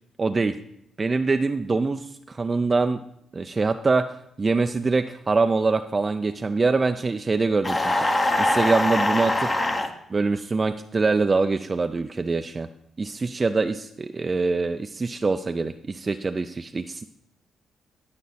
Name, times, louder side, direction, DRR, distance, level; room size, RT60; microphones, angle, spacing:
voice 1, 0.2-0.6 1.0-3.0 3.3-4.1 4.4-7.9 8.4-9.5 10.1-12.7 13.0-17.0, right 3 dB, 30° right, 7 dB, 0.4 m, -24 dB
sound 1, 7.6-9.9, left 1 dB, 25° left, 0.8 m, -23 dB
11.5 x 5.2 x 4.1 m, 0.76 s
cardioid pair, 80°, 0 cm